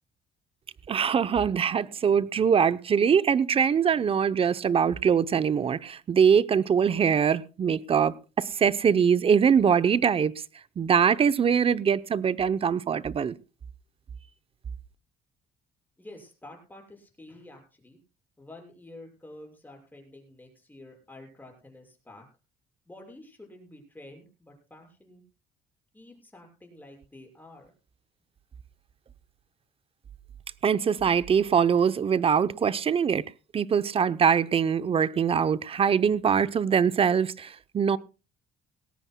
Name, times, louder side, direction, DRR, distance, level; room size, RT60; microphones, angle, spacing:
voice 1, 0.9-10.3 10.8-13.3 30.6-33.2 33.5-38.0, right 7 dB, 35° right, 0.7 m, -23 dB
voice 2, 16.0-18.0 18.4-22.3 22.9-25.2 25.9-27.7, left 1 dB, 10° left, 6.2 m, -49 dB
19.5 x 17.5 x 2.2 m
cardioid pair, 110°, 17 cm